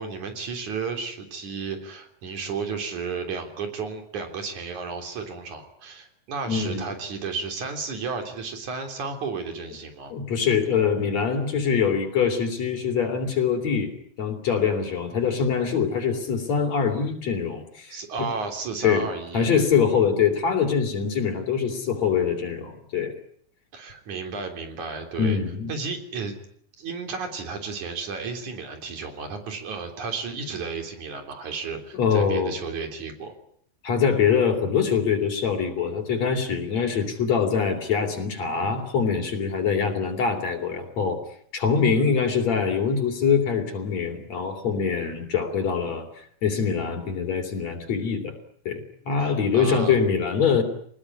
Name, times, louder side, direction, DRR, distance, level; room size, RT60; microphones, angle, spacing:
voice 1, 0.0-10.1 17.9-19.5 23.7-25.4 25.7-26.4 26.8-33.4 49.2-50.0, right 5 dB, 80° right, 5 dB, 4.9 m, -33 dB
voice 2, 6.5-6.8 10.1-13.9 14.2-18.3 18.8-19.1 19.3-23.1 25.2-25.7 31.9-32.5 33.8-41.2 41.5-46.1 46.4-48.4 48.7-50.6, left 6 dB, 65° left, 4 dB, 4.5 m, -24 dB
24.5 x 20.0 x 9.8 m, 0.65 s
omnidirectional pair, 3.3 m